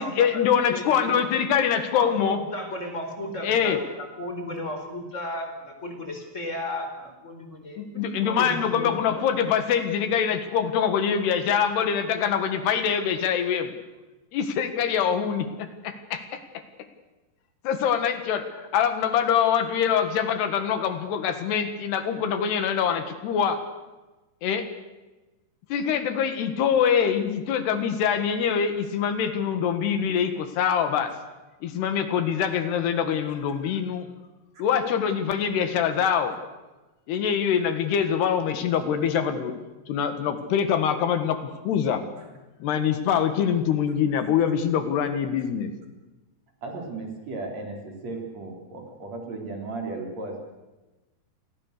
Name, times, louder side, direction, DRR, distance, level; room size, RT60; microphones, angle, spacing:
voice 1, 0.0-2.4 3.4-3.8 7.8-13.7 14.3-16.4 17.6-23.6 24.4-24.7 25.7-31.1 31.6-34.1 34.6-36.4 37.1-39.5 39.9-42.0 42.6-45.7, left 8 dB, 80° left, 8 dB, 3.8 m, -24 dB
voice 2, 0.7-1.2 2.0-3.8 4.2-9.1, left 1 dB, 20° left, 4 dB, 4.3 m, -34 dB
voice 3, 46.6-50.4, right 3 dB, 45° right, 1 dB, 4.7 m, -35 dB
29.5 x 22.0 x 6.7 m, 1.1 s
omnidirectional pair, 4.7 m